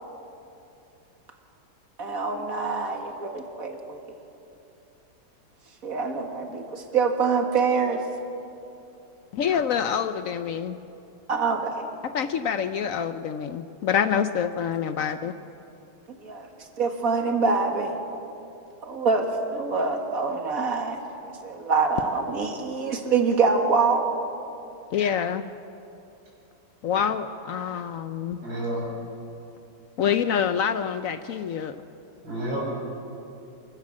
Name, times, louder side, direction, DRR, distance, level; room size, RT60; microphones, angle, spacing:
voice 1, 2.0-4.0 5.8-8.0 11.3-11.9 16.2-16.5 16.8-17.9 18.8-24.1, right 4 dB, 45° right, 4 dB, 2.3 m, -25 dB
voice 2, 9.3-10.8 12.0-15.4 24.9-25.5 26.8-28.4 30.0-31.8, left 8 dB, 85° left, 10 dB, 0.7 m, -26 dB
voice 3, 28.4-28.8 32.2-32.7, right 1 dB, 70° right, -4 dB, 7.3 m, -29 dB
27.5 x 15.0 x 7.4 m, 2.7 s
omnidirectional pair, 2.2 m